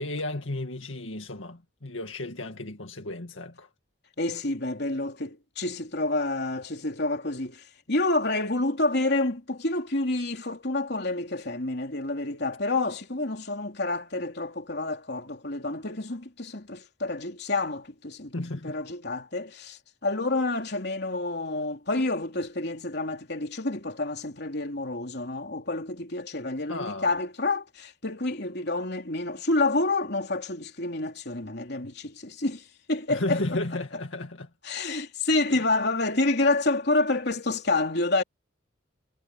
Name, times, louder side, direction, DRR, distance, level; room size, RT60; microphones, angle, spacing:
voice 1, 0.0-3.7 18.3-18.8 26.7-27.2 33.1-34.5 35.5-35.6, left 2 dB, 80° left, 2.1 m, -33 dB
voice 2, 4.2-18.4 18.6-33.4 34.6-38.2, left 2 dB, 55° left, 3.4 m, -28 dB
head